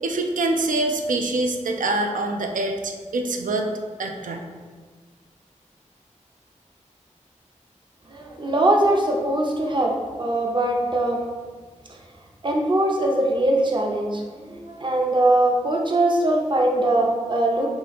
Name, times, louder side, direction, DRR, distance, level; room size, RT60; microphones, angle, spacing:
voice 1, 0.0-3.7 4.0-4.4, right 2 dB, 85° right, 4 dB, 0.4 m, -25 dB
voice 2, 8.1-11.2 11.9-12.0 12.4-17.7, right 1 dB, 35° right, 0 dB, 0.6 m, -21 dB
3.0 x 2.5 x 4.0 m, 1.5 s
wide cardioid pair, 60°, 13 cm